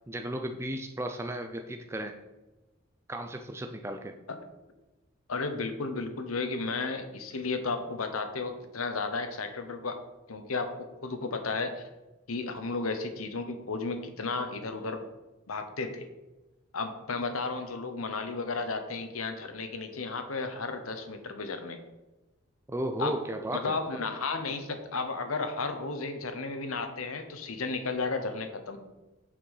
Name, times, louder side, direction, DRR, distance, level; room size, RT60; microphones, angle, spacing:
voice 1, 0.1-2.2 3.1-4.1 22.7-23.8, right 1 dB, 15° right, 5 dB, 0.4 m, -34 dB
voice 2, 5.3-10.0 10.3-11.9 12.3-15.0 15.5-16.1 16.7-21.8 23.0-23.2 23.5-28.8, left 3 dB, 85° left, 7 dB, 1.0 m, -33 dB
6.7 x 5.1 x 5.5 m, 1.1 s
head